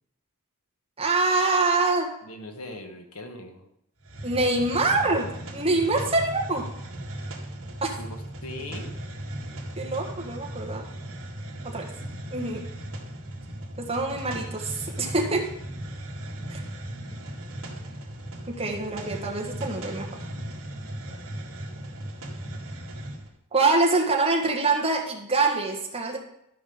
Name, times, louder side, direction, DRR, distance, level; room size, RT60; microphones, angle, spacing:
voice 1, 1.0-2.1 4.2-6.6 7.8-7.9 9.8-10.8 11.6-11.8 12.3-12.6 13.8-15.5 16.5-16.6 18.5-20.1 23.5-26.2, right 3 dB, 25° right, 0 dB, 1.6 m, -25 dB
voice 2, 2.2-3.7 8.0-8.9, left 1 dB, 80° left, 5 dB, 1.5 m, -40 dB
Hiss, 4.0-23.3, right 1 dB, 65° right, 2.0 m, -37 dB
12.5 x 5.3 x 5.4 m, 0.77 s
head